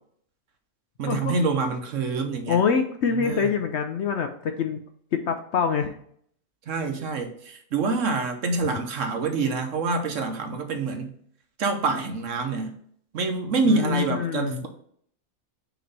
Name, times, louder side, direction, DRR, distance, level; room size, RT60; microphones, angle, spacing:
voice 1, 1.0-2.6 3.2-3.5 6.7-11.1 11.6-12.7 13.1-14.7, right 4 dB, 65° right, 5 dB, 1.1 m, -26 dB
voice 2, 2.5-4.8 5.1-5.9 13.6-14.7, left 6 dB, 65° left, 6 dB, 0.7 m, -25 dB
5.9 x 3.0 x 5.3 m, 0.63 s
omnidirectional pair, 1.5 m